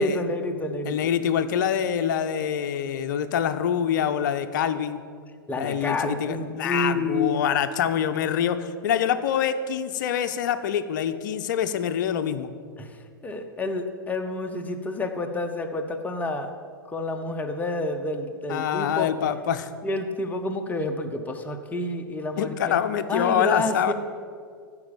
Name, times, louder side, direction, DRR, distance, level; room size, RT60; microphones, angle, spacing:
voice 1, 0.0-1.1 5.5-7.4 12.8-16.5 16.9-19.1 19.8-22.8 23.1-23.9, left 2 dB, 15° left, 5 dB, 0.9 m, -29 dB
voice 2, 0.8-5.0 5.6-12.5 18.5-19.7 22.4-23.9, left 9 dB, 55° left, 11 dB, 0.6 m, -25 dB
14.0 x 4.8 x 7.2 m, 2.1 s
figure-of-eight pair, 100°, 12 cm